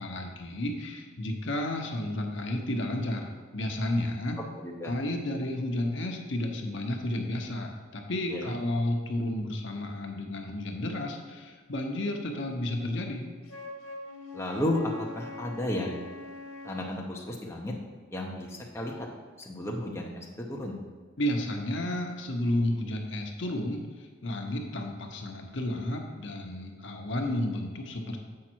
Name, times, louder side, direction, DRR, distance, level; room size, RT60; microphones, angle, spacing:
voice 1, 0.0-4.4 4.8-13.3 21.2-28.2, left 1 dB, 65° left, 2 dB, 0.8 m, -32 dB
voice 2, 4.6-4.9 8.3-8.5 14.3-16.0 16.6-17.7 18.1-19.1 19.4-20.8, left 1 dB, 15° left, -2 dB, 0.8 m, -33 dB
Wind instrument woodwind instrument, 13.4-17.0, left 2 dB, 90° left, 1.1 m, -43 dB
7.4 x 5.2 x 4.5 m, 1.5 s
head